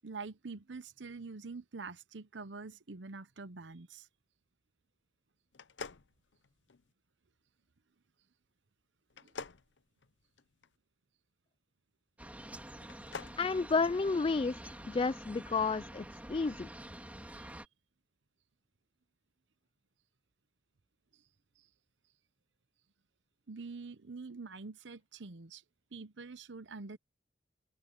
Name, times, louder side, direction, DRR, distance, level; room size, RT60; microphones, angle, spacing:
voice 1, 0.0-4.1 9.2-9.3 17.3-17.5 23.5-25.6 25.9-27.0, right 4 dB, 90° right, 0.9 m, -46 dB
sound 1, 5.5-6.9 9.1-10.7 12.7-13.4, left 5 dB, 90° left, 0.8 m, -46 dB
sound 2, 12.2-17.7, right 1 dB, 10° right, 3.2 m, -48 dB
voice 2, 13.4-16.7, left 4 dB, 30° left, 0.4 m, -31 dB
open air
head